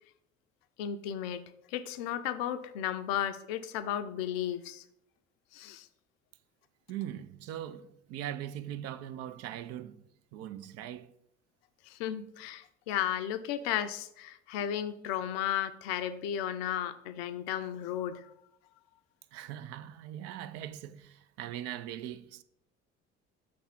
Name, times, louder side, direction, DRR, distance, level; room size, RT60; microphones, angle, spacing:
voice 1, 0.8-4.8 5.5-5.9 11.9-18.3, left 10 dB, 60° left, 0.5 m, -34 dB
voice 2, 6.9-10.0 10.3-11.1 19.3-22.4, right 11 dB, 45° right, 0.4 m, -41 dB
6.0 x 3.4 x 5.8 m
figure-of-eight pair, 55°, 34 cm